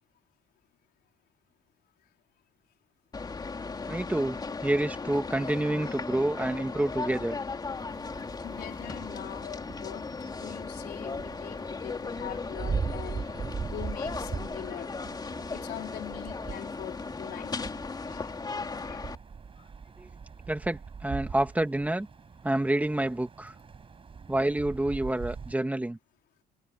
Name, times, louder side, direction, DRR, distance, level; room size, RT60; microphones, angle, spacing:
sound 1, 3.1-19.2, left 4 dB, 25° left, 3.1 m, -37 dB
voice 1, 3.9-7.4 20.0-20.1 20.5-22.1 22.4-23.5 24.3-26.0, right 1 dB, 10° right, 2.2 m, -28 dB
sound 2, 7.8-25.5, right 5 dB, 30° right, 6.0 m, -41 dB
voice 2, 8.4-13.3 13.6-14.9 15.5-17.6 18.0-18.4 18.7-19.1 19.6-19.7, left 12 dB, 70° left, 4.5 m, -43 dB
cardioid pair, 110°, 17 cm